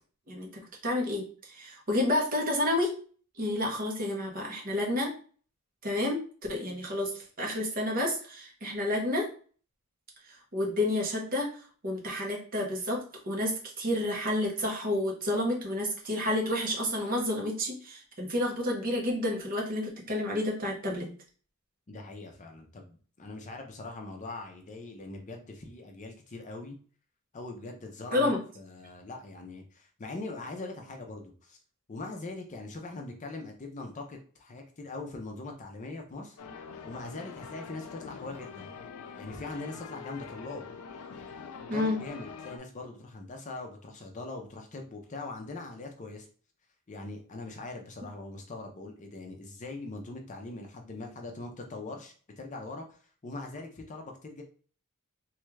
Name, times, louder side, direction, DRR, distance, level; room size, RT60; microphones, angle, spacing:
voice 1, 0.3-2.9 3.4-5.1 5.8-6.2 6.5-7.1 7.4-9.3 10.3-21.1 28.1-28.4 41.7-42.0, left 1 dB, 40° right, 0 dB, 1.0 m, -30 dB
voice 2, 21.9-26.8 27.3-28.3 28.6-31.6 31.9-36.4 36.8-38.7 39.2-40.6 41.7-46.3 46.9-54.4, left 2 dB, 35° left, 3 dB, 0.5 m, -41 dB
sound 1, 36.4-42.6, left 5 dB, 85° left, 0.4 m, -44 dB
3.1 x 2.4 x 3.2 m, 0.42 s
head